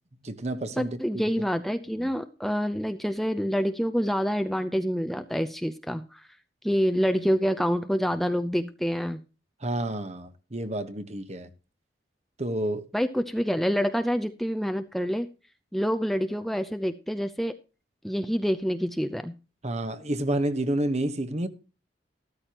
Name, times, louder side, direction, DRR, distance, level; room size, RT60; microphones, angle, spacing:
voice 1, 0.2-1.0 2.0-2.1 9.6-11.5 12.4-12.9 19.6-21.5, right 1 dB, 35° right, 1.1 m, -29 dB
voice 2, 0.8-6.2 6.6-9.2 12.9-15.3 15.7-17.5 18.0-19.3, equal, ahead, 0.6 m, -27 dB
14.0 x 13.0 x 2.9 m
head